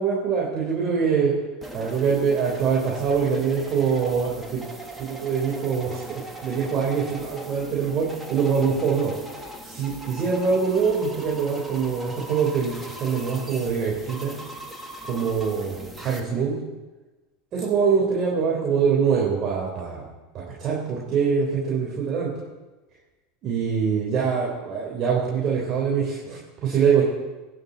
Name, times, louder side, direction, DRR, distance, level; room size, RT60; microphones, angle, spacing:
voice 1, 0.0-1.3 1.7-4.6 5.0-9.1 9.6-14.3 15.1-16.5 17.5-20.1 20.3-22.3 23.4-27.0, right 6 dB, 45° right, -3 dB, 4.3 m, -24 dB
sound 1, 1.6-16.2, right 1 dB, 5° right, 2.4 m, -40 dB
22.5 x 10.5 x 4.4 m, 1.1 s
hypercardioid pair, 80°, 0 cm